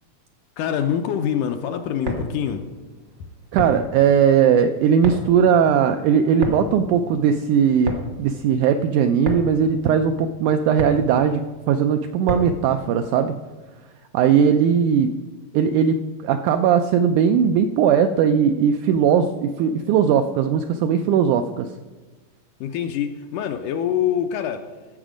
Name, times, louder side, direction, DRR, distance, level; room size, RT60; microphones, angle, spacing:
voice 1, 0.6-2.6 22.6-24.7, left 9 dB, 80° left, 6 dB, 2.0 m, -25 dB
sound 1, 1.9-12.7, right 1 dB, 55° right, 1.1 m, -33 dB
voice 2, 3.5-13.4 14.1-15.1 15.5-16.0 16.2-21.7, right 7 dB, 85° right, 7 dB, 1.8 m, -19 dB
15.0 x 7.0 x 5.0 m, 1.3 s
omnidirectional pair, 4.0 m